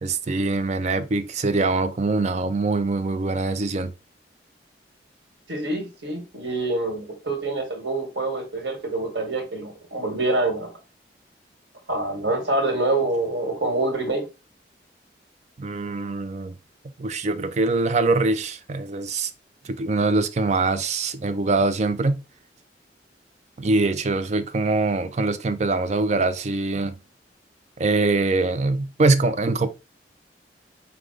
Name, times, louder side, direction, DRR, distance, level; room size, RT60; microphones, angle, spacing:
voice 1, 0.0-3.9 15.6-16.5 17.0-19.3 19.6-22.2 23.6-27.0 27.8-29.7, right 3 dB, 40° right, 0.4 m, -23 dB
voice 2, 5.5-10.7 11.9-14.2, right 2 dB, 85° right, 1.4 m, -26 dB
4.8 x 2.3 x 3.7 m
head